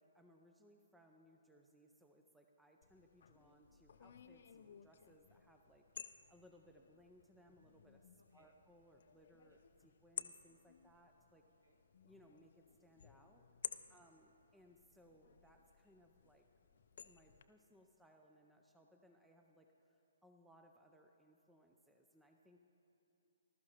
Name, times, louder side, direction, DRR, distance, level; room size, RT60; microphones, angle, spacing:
voice 1, 0.0-11.5 12.0-16.5 17.0-22.6, equal, 5° right, 3 dB, 0.5 m, -67 dB
sound 1, 2.8-17.4, left 8 dB, 50° left, 0.5 m, -55 dB
voice 2, 8.2-8.5 9.5-9.7 11.4-11.8 13.8-14.0, right 1 dB, 65° right, 2 dB, 1.7 m, -75 dB
20.0 x 12.5 x 3.0 m, 2.8 s
figure-of-eight pair, 130°, 0 cm